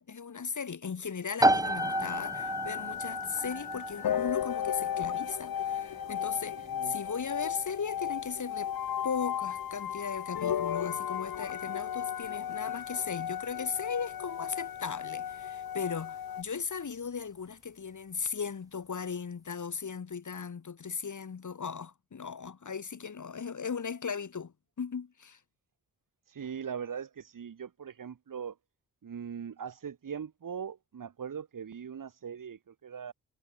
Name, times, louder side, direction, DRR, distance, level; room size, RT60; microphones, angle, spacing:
voice 1, 0.0-8.7 9.0-25.4, left 6 dB, 50° left, 7.9 m, -37 dB
sound 1, 1.4-15.9, right 1 dB, 10° right, 1.9 m, -35 dB
sound 2, 1.8-16.4, left 9 dB, 70° left, 6.3 m, -35 dB
voice 2, 26.3-28.6 29.0-33.1, right 7 dB, 60° right, 5.5 m, -40 dB
hypercardioid pair, 40°, 37 cm